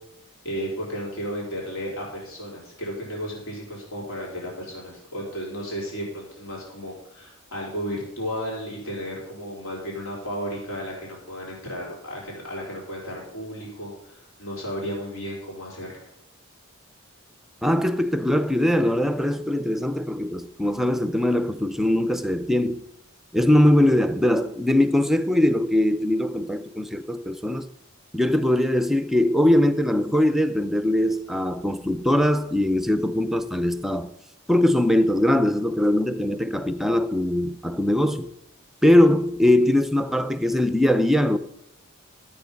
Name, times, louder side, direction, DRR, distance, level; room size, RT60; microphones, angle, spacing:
voice 1, 0.4-16.1, equal, 70° left, 4.0 m, -34 dB
voice 2, 17.6-22.8 23.3-27.7 28.1-34.1 34.5-38.3 38.8-41.4, left 1 dB, ahead, 0.6 m, -21 dB
13.0 x 8.5 x 5.3 m
head